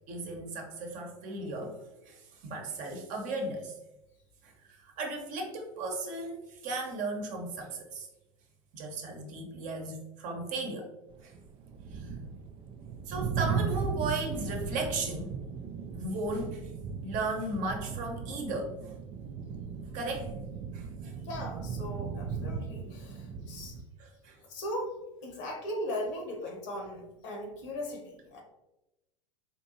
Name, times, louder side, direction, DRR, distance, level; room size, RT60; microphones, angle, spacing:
voice 1, 0.1-3.8 4.4-8.1 8.7-10.9 11.2-11.3 11.9-12.1 13.1-15.3 15.9-16.7 17.0-19.0 19.9-20.3 20.7-21.1 24.0-24.4, right 2 dB, 45° right, 2 dB, 0.9 m, -36 dB
sound 1, 11.1-23.8, right 6 dB, 30° right, 0.4 m, -37 dB
voice 2, 21.2-23.8 24.5-25.0 25.2-28.4, left 1 dB, 60° left, 2 dB, 1.1 m, -38 dB
4.3 x 2.6 x 2.7 m, 0.96 s
hypercardioid pair, 90°, 18 cm